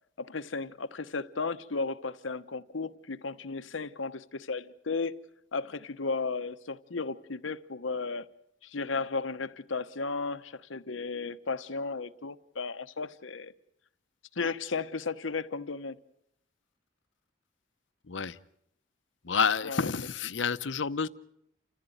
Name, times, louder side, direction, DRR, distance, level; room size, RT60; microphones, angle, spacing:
voice 1, 0.2-5.1 5.5-8.3 8.6-13.5 14.3-16.0 19.6-19.9, left 4 dB, 90° left, 1.0 m, -34 dB
voice 2, 19.2-21.1, left 6 dB, 70° left, 0.8 m, -29 dB
29.0 x 15.0 x 9.2 m
head